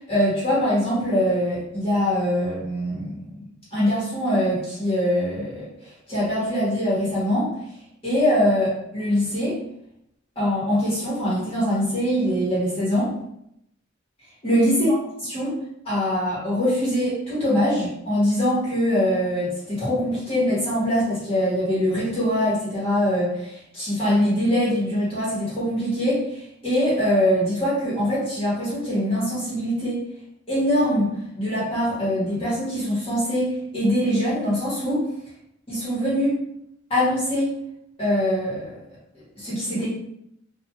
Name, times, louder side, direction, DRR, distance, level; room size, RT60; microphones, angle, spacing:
voice 1, 0.1-3.1 3.7-7.5 8.0-9.6 10.3-13.1 14.4-15.5 15.8-30.0 30.5-35.1 35.7-36.3 36.9-37.5 38.0-38.6 39.4-39.9, equal, 30° left, -9 dB, 1.2 m, -23 dB
2.9 x 2.5 x 2.3 m, 0.77 s
head